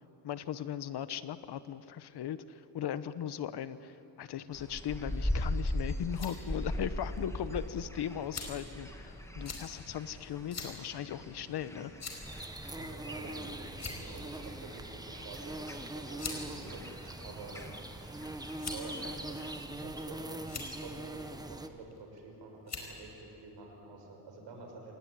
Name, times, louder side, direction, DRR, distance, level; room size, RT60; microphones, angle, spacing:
voice 1, 0.2-11.9, left 10 dB, 65° left, 14 dB, 1.1 m, -38 dB
sound 1, 4.5-19.6, left 1 dB, 5° left, 2.2 m, -41 dB
sound 2, 6.0-6.4 7.2-7.3 8.3-8.7 9.4-9.6 10.5-10.7 11.1-11.2 12.0-12.3 13.2-13.4 13.7-14.2 15.3-15.5 16.2-16.4 17.2-17.8 18.6-19.0 19.7-20.1 20.4-20.7 21.9-22.2 22.7-22.9, left 4 dB, 40° left, 4.9 m, -42 dB
sound 3, 12.2-21.7, right 1 dB, 10° right, 1.4 m, -42 dB
voice 2, 12.8-17.7 17.9-18.2 18.5-20.4 20.7-24.9, right 3 dB, 85° right, 2 dB, 6.0 m, -49 dB
26.5 x 19.0 x 9.9 m, 2.8 s
cardioid pair, 115°, 42 cm